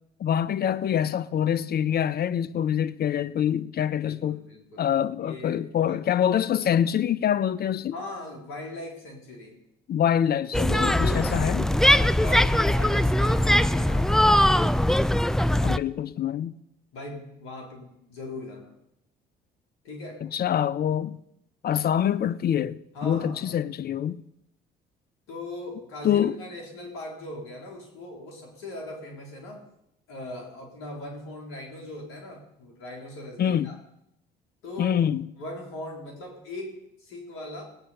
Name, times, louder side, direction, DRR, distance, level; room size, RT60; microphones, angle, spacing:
voice 1, 0.2-4.4 4.8-8.0 9.9-11.7 15.6-16.5 20.2-21.2 21.6-24.2 26.0-26.4 33.4-33.7 34.8-35.3, left 9 dB, 45° left, 0.7 m, -25 dB
voice 2, 4.0-4.9 5.2-6.0 7.9-9.6 10.7-14.8 16.9-18.8 19.8-20.2 22.9-23.6 25.3-29.6 30.1-33.8 34.6-35.0 35.4-37.6, left 1 dB, 75° left, 3.8 m, -39 dB
sound 1, 10.5-15.8, left 1 dB, ahead, 0.5 m, -21 dB
19.0 x 8.9 x 5.6 m
hypercardioid pair, 60°, 21 cm